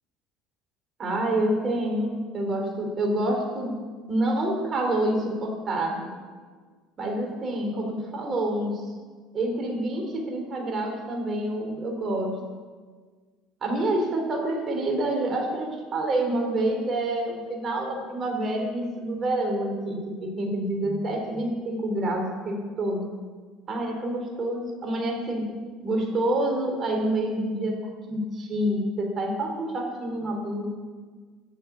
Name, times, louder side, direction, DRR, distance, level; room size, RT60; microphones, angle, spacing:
voice 1, 1.0-3.7 4.1-6.1 7.0-8.8 9.3-12.4 13.6-23.0 23.7-25.5 25.8-27.8 28.1-30.6, right 1 dB, 40° right, 1 dB, 3.9 m, -27 dB
12.5 x 7.7 x 8.4 m, 1.5 s
supercardioid pair, 90°, 0 cm